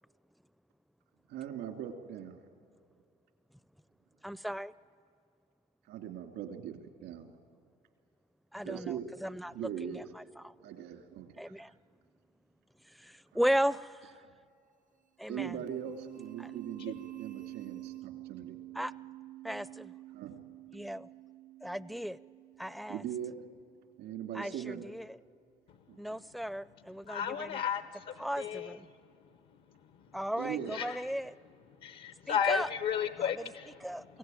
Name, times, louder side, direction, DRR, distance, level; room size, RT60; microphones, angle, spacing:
voice 1, 1.3-2.4 5.9-7.4 8.6-9.1 9.5-10.0 10.6-11.3 13.3-13.4 14.2-14.3 15.3-18.6 20.1-20.4 22.9-23.3 24.0-24.9 25.9-26.2 30.3-30.8, right 9 dB, 85° right, 4 dB, 2.6 m, -40 dB
voice 2, 4.2-4.7 8.5-9.5 9.8-10.5 11.4-11.7 12.9-14.1 15.2-15.6 16.4-16.5 18.7-18.9 19.4-19.9 20.7-21.1 21.6-22.2 22.6-23.0 24.3-25.2 26.0-27.6 28.2-28.9 30.1-31.4 32.3-32.7 33.2-33.3 33.8-34.0, equal, ahead, 17 dB, 0.4 m, -36 dB
sound 1, 15.5-24.2, right 16 dB, 50° right, 0.6 m, -49 dB
voice 3, 27.1-28.8 29.7-30.1 30.7-31.0 31.8-33.9, left 8 dB, 75° left, 10 dB, 0.9 m, -34 dB
23.5 x 16.0 x 9.2 m, 2.4 s
cardioid pair, 110°, 17 cm